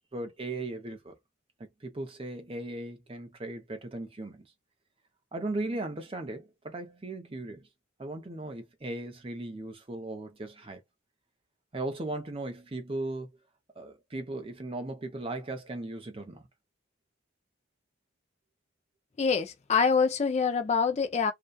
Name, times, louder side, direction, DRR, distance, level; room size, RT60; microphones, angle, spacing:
voice 1, 0.1-1.1 1.8-4.5 5.3-7.7 8.0-10.8 11.7-13.3 13.8-16.4, right 2 dB, 25° right, 0.6 m, -37 dB
voice 2, 19.2-21.3, left 5 dB, 30° left, 0.3 m, -25 dB
2.6 x 2.2 x 2.2 m
head